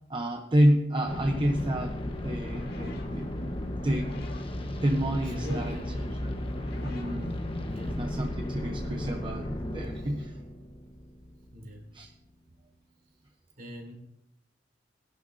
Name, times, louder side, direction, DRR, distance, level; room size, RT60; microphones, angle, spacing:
voice 1, 0.1-3.3 3.8-4.2 4.7-5.8 6.8-7.4 7.9-10.4 11.9-12.1, equal, 30° right, 3 dB, 0.9 m, -28 dB
sound 1, 1.1-11.8, left 1 dB, 30° left, 1.2 m, -35 dB
sound 2, 2.3-8.1, left 3 dB, 60° left, 2.2 m, -52 dB
voice 2, 5.2-6.3 7.7-8.1 9.9-10.2 11.5-11.9 13.6-13.9, equal, 50° right, 0 dB, 3.3 m, -43 dB
20.0 x 11.0 x 2.8 m, 0.83 s
head